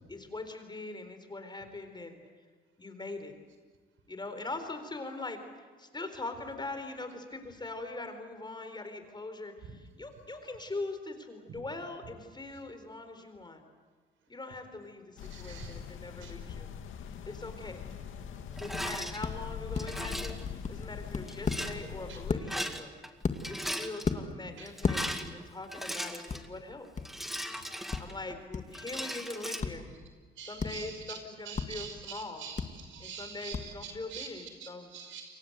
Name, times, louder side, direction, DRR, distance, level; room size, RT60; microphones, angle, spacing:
voice 1, 0.1-2.2 2.8-3.4 4.1-5.4 5.8-13.6 14.3-16.7 17.3-17.8 18.6-23.0 23.5-26.9 28.0-29.9 30.4-32.5 33.0-34.9, left 2 dB, 20° left, 8 dB, 4.2 m, -42 dB
sound 1, 15.2-22.3, left 8 dB, 80° left, 2.5 m, -43 dB
voice 2, 15.3-15.8 16.2-16.3 24.6-24.7 30.4-31.2 31.5-34.3 34.6-35.3, right 7 dB, 80° right, 6 dB, 5.5 m, -45 dB
sound 2, 18.6-18.8 19.2-19.3 19.7-21.6 22.3-22.4 23.2-23.7 24.0-24.2 24.8-25.0 26.3-26.4 27.0-27.1 27.9-28.0 28.5-28.6 29.6-29.7 30.6-30.7 31.6-31.7 32.6-32.7 33.5-33.6, left 5 dB, 35° left, 2.1 m, -31 dB
Rattle, 18.6-19.2 19.8-20.4 21.3-21.8 22.4-23.1 23.3-24.1 24.7-26.5 27.1-28.4 28.7-29.6, equal, ahead, 2.3 m, -38 dB
29.0 x 23.5 x 8.1 m, 1.5 s
cardioid pair, 90°, 20 cm